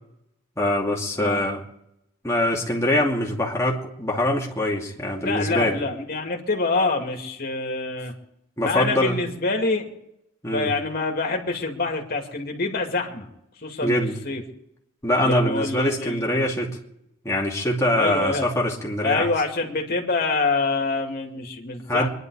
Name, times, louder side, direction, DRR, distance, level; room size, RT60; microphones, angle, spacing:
voice 1, 0.6-1.6 2.2-5.8 8.6-9.2 10.4-10.7 13.8-14.2 15.0-16.8 17.2-19.3 21.9-22.1, left 1 dB, 15° left, -2 dB, 2.5 m, -23 dB
voice 2, 5.2-8.1 8.6-9.8 10.4-13.3 13.6-14.0 14.2-14.4 15.2-16.4 17.9-18.5 19.0-22.1, left 3 dB, 45° left, 1 dB, 2.4 m, -26 dB
24.0 x 11.0 x 4.9 m, 0.82 s
head